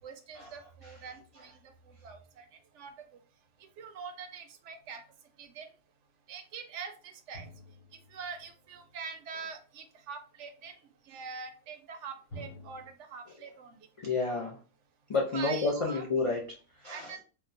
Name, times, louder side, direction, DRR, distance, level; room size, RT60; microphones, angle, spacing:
voice 1, 0.0-1.6 1.9-2.5 2.7-3.1 3.8-5.0 5.4-5.7 6.3-7.5 7.9-10.7 11.1-13.8 15.3-16.1 16.9-17.2, right 5 dB, 70° right, 7 dB, 0.9 m, -44 dB
sound 1, 7.3-9.0 12.3-12.9, equal, 85° left, 1.9 m, -49 dB
voice 2, 14.0-14.6 15.1-17.1, left 3 dB, 60° left, -2 dB, 0.3 m, -30 dB
3.6 x 2.2 x 2.6 m, 0.36 s
omnidirectional pair, 1.3 m